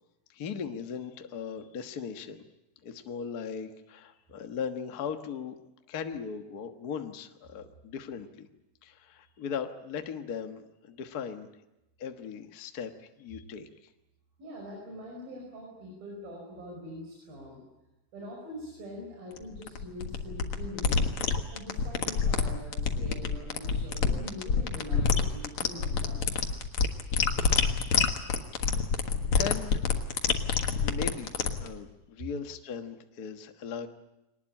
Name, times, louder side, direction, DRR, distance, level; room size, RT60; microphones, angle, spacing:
voice 1, 0.3-2.4 2.8-5.5 5.9-8.5 8.8-11.5 12.0-13.7 28.5-29.0 29.3-29.8 30.8-33.9, left 6 dB, 80° left, 6 dB, 0.8 m, -38 dB
voice 2, 14.4-17.6 18.1-21.1 21.5-26.4, left 1 dB, 85° right, -1 dB, 7.3 m, -43 dB
sound 1, 19.4-31.7, left 5 dB, 50° left, 2.0 m, -27 dB
23.0 x 19.0 x 10.0 m, 0.97 s
omnidirectional pair, 4.0 m